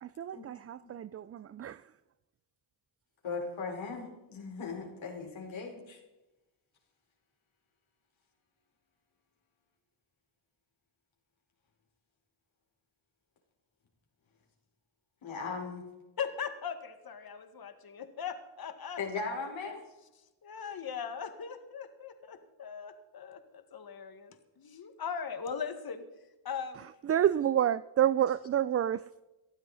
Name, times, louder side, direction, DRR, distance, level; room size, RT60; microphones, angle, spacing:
voice 1, 0.0-1.9 27.0-29.3, right 10 dB, 30° right, 0.4 m, -29 dB
voice 2, 3.2-6.0 15.2-15.8 19.0-19.8, left 4 dB, 65° left, 4.5 m, -38 dB
voice 3, 16.2-19.0 19.6-19.8 20.4-26.0 26.4-26.9, left 7 dB, 45° left, 1.8 m, -39 dB
19.0 x 12.5 x 4.1 m
supercardioid pair, 65°, 50 cm